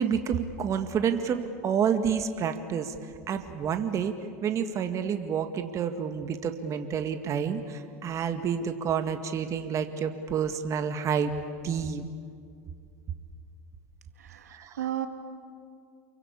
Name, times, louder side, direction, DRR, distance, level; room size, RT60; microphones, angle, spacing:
voice 1, 0.0-2.9 3.3-4.1 4.4-11.3 11.6-12.1 14.5-14.8, right 7 dB, 40° right, 7 dB, 2.0 m, -29 dB
voice 2, 14.2-15.1, right 11 dB, 90° right, 6 dB, 2.2 m, -34 dB
28.5 x 23.5 x 8.6 m, 2.3 s
hypercardioid pair, 95°, 8 cm